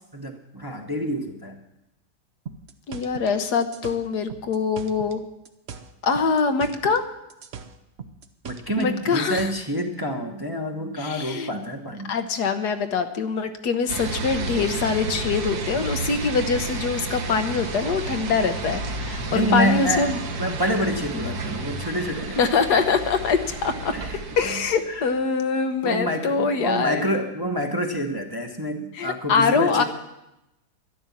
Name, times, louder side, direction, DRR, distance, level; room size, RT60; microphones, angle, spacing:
voice 1, 0.1-1.6 8.4-12.1 19.3-20.1 20.4-22.4 23.9-24.5 24.9-25.1 25.8-29.8, equal, 15° right, 2 dB, 1.0 m, -27 dB
sound 1, 2.5-5.2 5.5-7.0 7.3-9.7, right 6 dB, 50° right, 0.9 m, -40 dB
voice 2, 2.9-5.2 6.0-7.0 8.8-9.5 11.0-11.5 12.1-20.2 21.1-21.3 22.4-23.9 24.4-27.0 28.9-29.8, left 5 dB, 75° left, 8 dB, 1.5 m, -24 dB
sound 2, 13.9-25.0, right 3 dB, 70° right, 1.8 m, -31 dB
12.5 x 11.0 x 7.2 m, 0.91 s
omnidirectional pair, 1.8 m